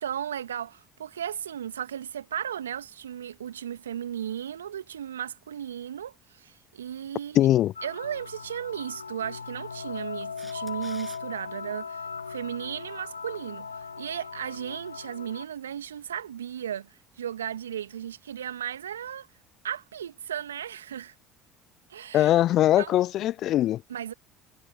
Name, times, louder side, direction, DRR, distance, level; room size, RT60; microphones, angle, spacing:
voice 1, 0.0-7.5 7.8-19.3 19.6-21.1 21.9-22.3 22.8-23.0 23.9-24.1, right 9 dB, 80° right, 2.0 m, -35 dB
voice 2, 7.4-7.7 22.1-23.8, left 13 dB, 50° left, 0.5 m, -21 dB
sound 1, 7.8-15.5, left 5 dB, 85° left, 2.2 m, -39 dB
Camera, 10.4-11.2 17.9-18.0, right 2 dB, 15° right, 7.7 m, -48 dB
figure-of-eight pair, 60°, 0 cm